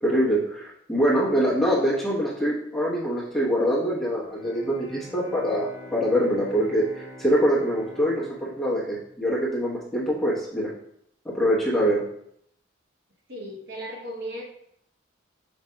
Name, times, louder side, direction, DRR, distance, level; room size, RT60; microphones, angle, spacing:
voice 1, 0.0-10.7 11.2-12.0, equal, ahead, -7 dB, 1.0 m, -24 dB
Bowed string instrument, 4.2-10.2, equal, 50° left, 1.0 m, -46 dB
voice 2, 13.3-14.4, right 1 dB, 50° right, -1 dB, 0.8 m, -36 dB
5.1 x 4.2 x 2.2 m, 0.72 s
head